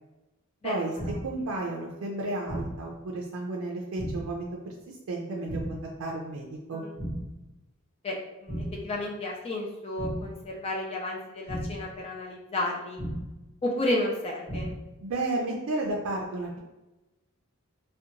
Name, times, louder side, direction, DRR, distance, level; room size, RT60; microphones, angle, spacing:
voice 1, 0.6-1.2 6.7-7.0 8.0-13.0 13.6-14.7, left 1 dB, 30° left, -1 dB, 0.3 m, -32 dB
sound 1, 1.0-1.5 2.5-3.0 4.0-4.5 5.5-6.0 7.0-7.5 8.5-9.0 10.0-10.5 11.5-12.0 13.0-13.5 14.5-15.0, equal, 5° right, 0.7 m, -35 dB
voice 2, 1.2-6.8 15.0-16.6, right 2 dB, 80° right, -1 dB, 0.4 m, -33 dB
2.8 x 2.2 x 2.5 m, 1.1 s
head